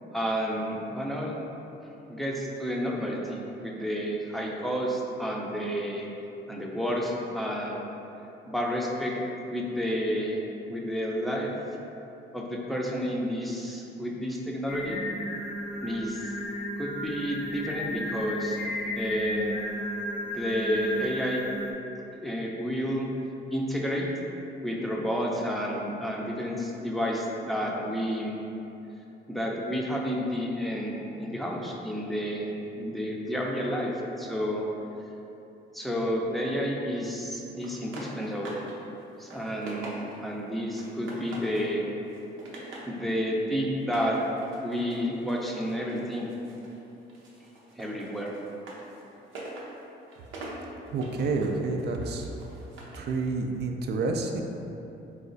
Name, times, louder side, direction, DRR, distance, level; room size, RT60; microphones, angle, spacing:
voice 1, 0.1-1.4 2.1-6.1 6.5-7.8 8.5-9.2 9.5-10.4 10.7-11.5 12.3-15.0 15.8-16.3 16.8-18.6 19.0-19.7 20.2-21.4 22.2-23.1 23.5-24.1 24.6-28.3 29.3-33.9 34.2-34.6 35.7-38.6 39.2-41.9 42.9-44.2 44.6-46.3 47.8-48.3, equal, ahead, -2 dB, 0.5 m, -30 dB
Singing, 14.7-21.7, equal, 60° left, 0.6 m, -34 dB
sound 1, 37.6-38.8 39.1-40.3 40.8-41.7 42.1-42.9 43.8-46.8 47.1-53.1, right 1 dB, 90° right, 0.7 m, -44 dB
voice 2, 50.9-52.3 53.0-54.4, right 3 dB, 55° right, 3 dB, 0.4 m, -29 dB
4.1 x 2.3 x 3.8 m, 3.0 s
cardioid pair, 90°, 20 cm